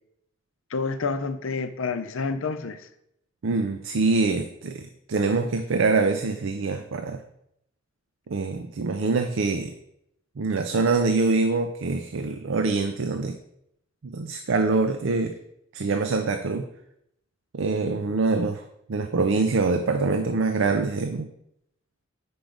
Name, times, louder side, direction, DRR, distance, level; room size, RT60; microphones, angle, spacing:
voice 1, 0.7-2.8, left 4 dB, 80° left, 10 dB, 0.6 m, -28 dB
voice 2, 3.4-7.2 8.3-9.7 10.4-13.4 14.0-15.3 15.7-16.7 17.5-18.6 18.9-21.3, right 3 dB, 70° right, 7 dB, 0.5 m, -24 dB
5.2 x 4.7 x 6.2 m, 0.77 s
head